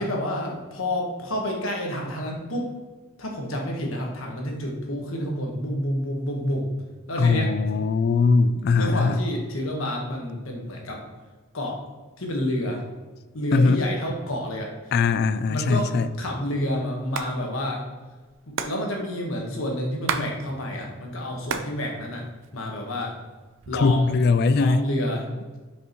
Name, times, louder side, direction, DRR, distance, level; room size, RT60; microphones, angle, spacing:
voice 1, 0.0-2.7 3.2-6.7 7.1-7.5 8.7-11.0 11.5-11.8 12.2-12.8 13.3-14.7 15.5-15.9 16.2-17.8 18.5-22.2 22.5-23.1 23.7-24.1 24.5-25.6, left 1 dB, 85° left, 0 dB, 1.3 m, -29 dB
voice 2, 7.2-9.2 13.5-13.8 14.9-16.1 23.7-24.8, left 4 dB, 50° left, 13 dB, 0.3 m, -20 dB
Hands, 16.9-17.3 17.6-17.7 17.9-20.3 20.6-21.8 22.1-22.9 23.5-24.1, right 6 dB, 65° right, 0.5 m, -31 dB
5.8 x 5.4 x 3.0 m, 1.3 s
head